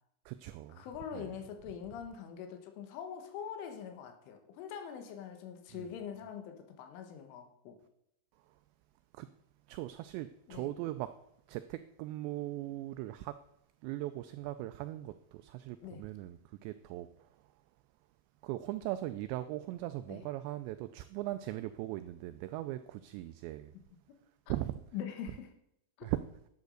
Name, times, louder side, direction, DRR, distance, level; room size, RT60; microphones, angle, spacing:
voice 1, 0.3-0.8 1.1-1.3 5.7-5.9 9.1-9.3 9.7-11.1 11.5-13.4 13.8-17.3 18.4-23.7 24.5-24.7 26.0-26.2, right 15 dB, 85° right, 2.5 m, -39 dB
voice 2, 0.8-7.8 10.5-10.7 15.8-16.1 20.1-20.3 24.5-24.6 24.9-25.5 26.0-26.1, left 8 dB, 85° left, 3.9 m, -43 dB
11.0 x 8.1 x 6.5 m
omnidirectional pair, 5.5 m